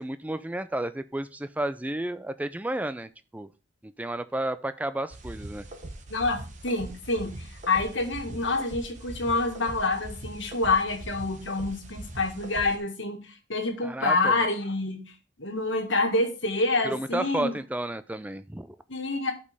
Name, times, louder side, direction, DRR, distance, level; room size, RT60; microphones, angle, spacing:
voice 1, 0.0-3.5 3.8-5.7 13.8-14.5 16.8-18.8, right 1 dB, 10° right, 12 dB, 0.4 m, -32 dB
sound 1, 5.1-12.8, right 1 dB, 40° right, 1.2 m, -41 dB
voice 2, 6.1-15.1 15.4-17.6 18.9-19.3, left 3 dB, 80° left, 4 dB, 1.8 m, -27 dB
12.5 x 5.4 x 3.5 m, 0.32 s
head